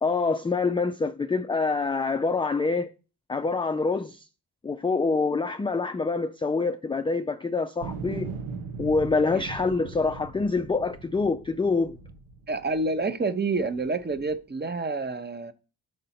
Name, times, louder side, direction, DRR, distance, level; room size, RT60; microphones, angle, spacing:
voice 1, 0.0-2.9 3.3-4.3 4.6-8.3 8.8-12.0, left 4 dB, 10° left, 0.3 m, -26 dB
sound 1, 7.8-13.0 13.6-14.4, right 5 dB, 85° right, 1.0 m, -39 dB
voice 2, 12.5-15.5, right 3 dB, 20° right, 0.6 m, -28 dB
6.5 x 3.9 x 4.2 m
supercardioid pair, 45°, 49 cm